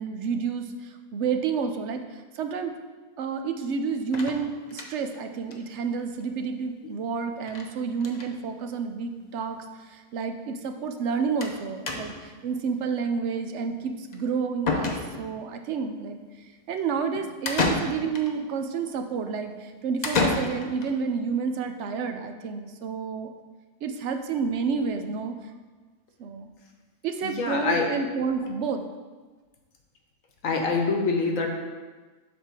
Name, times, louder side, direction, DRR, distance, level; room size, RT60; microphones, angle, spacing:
voice 1, 0.0-2.0 2.4-2.8 3.2-9.6 9.8-16.2 16.7-23.3 23.8-25.4 26.2-26.5 27.0-28.8, right 5 dB, 65° right, 6 dB, 0.8 m, -30 dB
sound 1, 4.1-5.2 5.5-5.6 5.9-6.0 6.2-6.3 7.5-7.7 8.0-8.3 9.2-9.3 9.6-9.7 11.4-11.6 11.9-12.3 14.1-14.2 14.7-15.4 17.5-18.3 20.0-20.9, left 3 dB, 40° left, 0.6 m, -29 dB
voice 2, 27.2-27.9 30.4-31.5, left 4 dB, 70° left, 2 dB, 1.3 m, -25 dB
7.3 x 3.5 x 6.0 m, 1.3 s
omnidirectional pair, 1.4 m